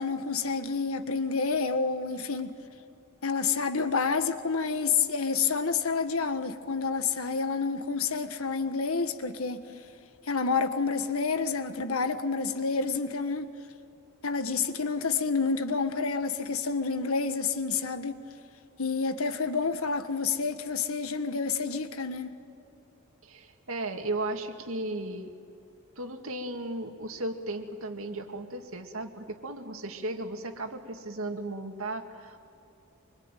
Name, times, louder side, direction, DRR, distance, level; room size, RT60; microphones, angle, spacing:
voice 1, 0.0-2.5 3.2-9.6 10.3-13.5 14.2-18.2 18.8-22.3, left 5 dB, 75° left, 1.6 m, -29 dB
voice 2, 23.2-25.3 26.0-32.4, right 2 dB, 70° right, 2.3 m, -35 dB
25.5 x 24.0 x 9.2 m
head